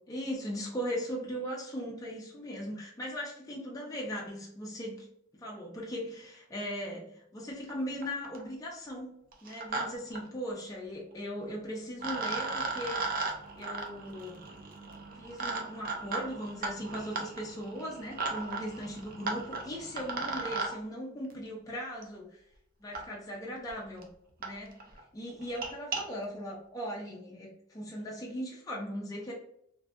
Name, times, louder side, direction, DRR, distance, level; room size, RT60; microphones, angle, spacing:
voice 1, 0.1-5.1 5.4-9.1 9.4-13.1 13.6-14.4 15.2-22.4 22.8-24.1 24.4-24.8 25.1-29.3, equal, 20° left, -3 dB, 0.5 m, -38 dB
sound 1, 7.7-7.8 8.0-8.5 9.3-9.8 10.1-10.2 11.5-11.6 12.0-20.7 22.0-22.1 22.9-23.0 23.7-23.8 24.0-24.1 24.4-24.5 24.8-25.0 25.4-26.0, right 3 dB, 45° right, 0.5 m, -36 dB
2.6 x 2.3 x 2.2 m, 0.73 s
head